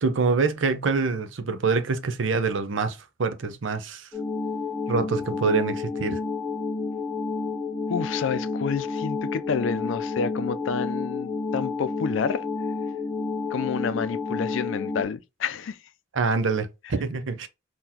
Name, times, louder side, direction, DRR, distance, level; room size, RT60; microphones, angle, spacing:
voice 1, 0.0-4.1 4.9-6.2 16.1-17.5, right 4 dB, 75° right, 0.6 m, -25 dB
sound 1, 4.1-15.0, left 4 dB, 5° left, 0.7 m, -30 dB
voice 2, 7.9-12.5 13.5-15.8, left 6 dB, 75° left, 0.4 m, -29 dB
3.8 x 2.9 x 2.7 m
head